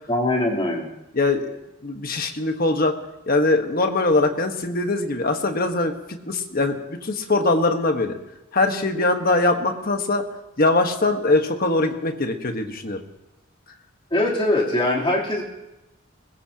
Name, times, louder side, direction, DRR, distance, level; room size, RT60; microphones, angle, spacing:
voice 1, 0.1-0.9 14.1-15.4, left 1 dB, 25° left, -4 dB, 3.4 m, -22 dB
voice 2, 1.1-1.5 1.8-3.0 3.3-8.2 8.5-10.2 10.6-13.0, left 2 dB, 45° left, 5 dB, 1.4 m, -22 dB
21.0 x 20.5 x 2.9 m, 0.96 s
head